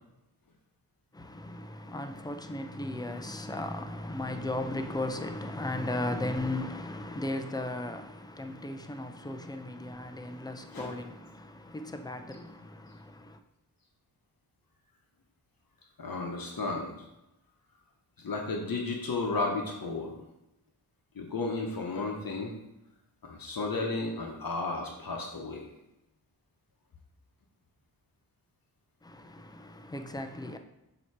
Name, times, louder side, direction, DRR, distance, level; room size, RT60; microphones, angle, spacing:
voice 1, 1.1-13.4 29.0-30.6, left 1 dB, 10° left, 0.5 m, -36 dB
voice 2, 10.7-11.0 16.0-16.9 18.2-20.2 21.2-22.6 23.2-25.6, left 3 dB, 60° left, 0.9 m, -33 dB
7.0 x 2.9 x 4.6 m
wide cardioid pair, 80°, 40 cm